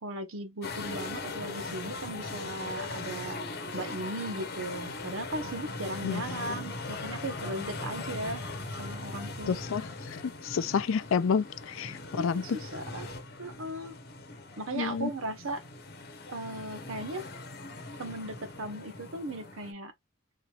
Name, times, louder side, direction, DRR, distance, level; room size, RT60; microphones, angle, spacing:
voice 1, 0.0-3.4 3.7-8.4 8.8-9.6 12.1-13.1 13.4-14.0 14.6-15.6 16.3-17.3 18.0-19.9, right 1 dB, 75° right, 0.8 m, -37 dB
sound 1, 0.6-19.7, left 3 dB, 45° left, 0.9 m, -40 dB
voice 2, 6.0-6.4 9.5-12.6 14.7-15.1, left 6 dB, 70° left, 0.4 m, -30 dB
3.8 x 3.2 x 2.3 m
head